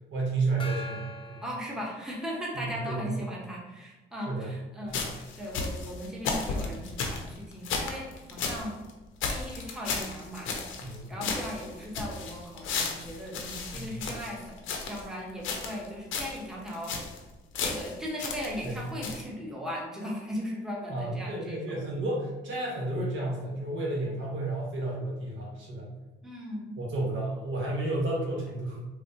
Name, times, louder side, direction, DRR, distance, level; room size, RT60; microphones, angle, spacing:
voice 1, 0.1-1.4 2.5-3.1 4.2-4.5 4.9-5.0 10.8-11.1 13.7-13.8 18.6-18.7 20.9-25.9 26.8-28.8, right 2 dB, 70° right, -4 dB, 1.3 m, -32 dB
Gong, 0.6-2.6, left 2 dB, 25° left, 0.5 m, -43 dB
voice 2, 1.4-8.8 9.3-14.6 14.9-17.0 17.6-21.8 26.2-26.8, equal, 5° right, -3 dB, 0.8 m, -38 dB
sound 1, 4.9-8.6 8.9-9.0 9.2-11.0 11.2-15.1 15.4-16.4 16.7-17.2 17.5-18.8 19.0-19.2, left 4 dB, 85° left, 0.6 m, -34 dB
4.0 x 2.3 x 2.7 m, 1.1 s
cardioid pair, 90°, 20 cm